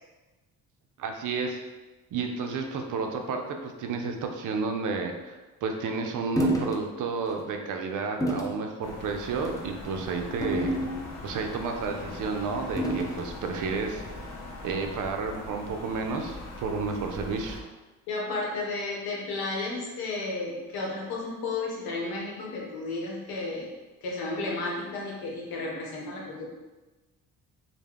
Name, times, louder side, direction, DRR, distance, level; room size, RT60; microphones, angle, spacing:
voice 1, 1.0-1.6 2.1-10.7 11.2-14.0 14.6-17.6, right 4 dB, 55° right, 4 dB, 0.5 m, -31 dB
sound 1, 6.4-6.8 7.3-7.4 8.2-8.6 9.4-9.7 10.4-11.3 12.8-13.3, right 1 dB, 10° left, 0.4 m, -29 dB
sound 2, 8.8-17.6, left 2 dB, 45° left, 0.6 m, -41 dB
voice 2, 18.1-23.7 24.0-26.5, left 3 dB, 75° left, -2 dB, 0.8 m, -33 dB
2.2 x 2.1 x 3.4 m, 1.2 s
supercardioid pair, 65°, 37 cm